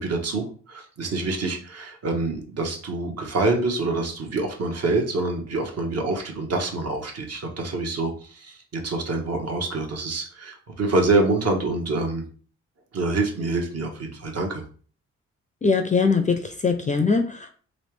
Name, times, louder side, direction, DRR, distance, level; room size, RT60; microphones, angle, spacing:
voice 1, 0.0-12.2 12.9-14.6, right 3 dB, 50° right, 2 dB, 1.1 m, -26 dB
voice 2, 15.6-17.5, left 4 dB, 25° left, 7 dB, 0.5 m, -22 dB
3.2 x 2.5 x 3.2 m, 0.42 s
hypercardioid pair, 45°, 33 cm